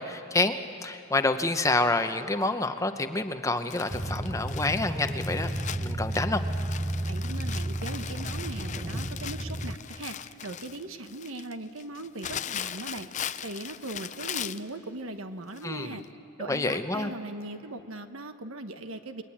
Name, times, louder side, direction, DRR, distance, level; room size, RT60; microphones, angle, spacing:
voice 1, 0.0-6.4 15.6-16.0 16.4-17.1, left 2 dB, 15° left, 8 dB, 0.8 m, -28 dB
Crumpling crinkling, 3.7-14.7 15.6-15.7 16.0-16.1, left 9 dB, 35° left, 0.5 m, -39 dB
sound 1, 3.9-9.8, right 1 dB, 20° right, 0.6 m, -32 dB
voice 2, 7.1-13.1 13.4-16.0 16.4-19.2, right 2 dB, 80° right, 8 dB, 1.3 m, -39 dB
29.0 x 22.0 x 8.6 m, 2.9 s
head